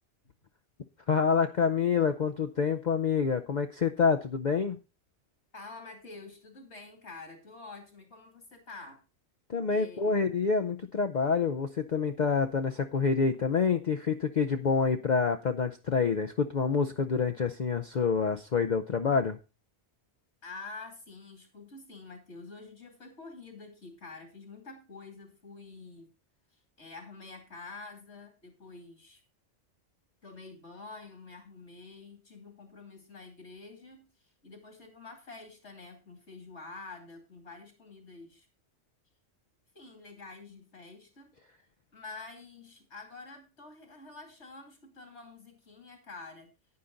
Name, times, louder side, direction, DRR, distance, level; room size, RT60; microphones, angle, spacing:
voice 1, 1.1-4.8 9.5-19.4, left 5 dB, 45° left, 7 dB, 0.7 m, -27 dB
voice 2, 5.5-9.0 9.7-10.1 20.4-26.1 26.5-29.2 30.2-38.5 39.7-41.3 41.9-46.5, left 3 dB, 70° left, 4 dB, 3.0 m, -48 dB
10.0 x 9.6 x 3.9 m, 0.29 s
omnidirectional pair, 1.2 m